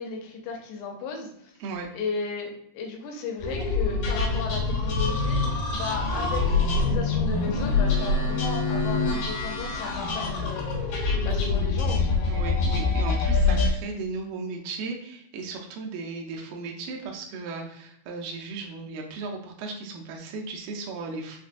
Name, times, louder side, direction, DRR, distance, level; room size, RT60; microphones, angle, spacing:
voice 1, 0.0-1.6 1.9-5.4 5.7-12.4, left 4 dB, 85° left, 1 dB, 2.8 m, -35 dB
sound 1, 3.4-13.7, left 3 dB, 65° left, 2.7 m, -25 dB
voice 2, 12.3-21.4, right 4 dB, 80° right, 0 dB, 2.1 m, -36 dB
6.0 x 2.2 x 2.5 m, 0.74 s
omnidirectional pair, 4.6 m